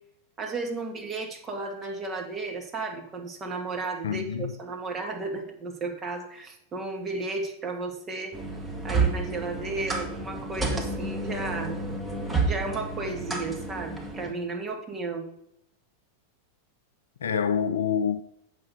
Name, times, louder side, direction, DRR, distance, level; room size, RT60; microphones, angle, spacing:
voice 1, 0.4-8.3 8.8-11.8 12.5-15.3, right 3 dB, 25° right, 1.9 m, -34 dB
voice 2, 4.0-4.5 17.2-18.2, left 7 dB, 65° left, 0.5 m, -26 dB
sound 1, 8.3-14.3, right 3 dB, 5° right, 1.7 m, -30 dB
8.4 x 6.4 x 4.8 m
figure-of-eight pair, 90°, 0 cm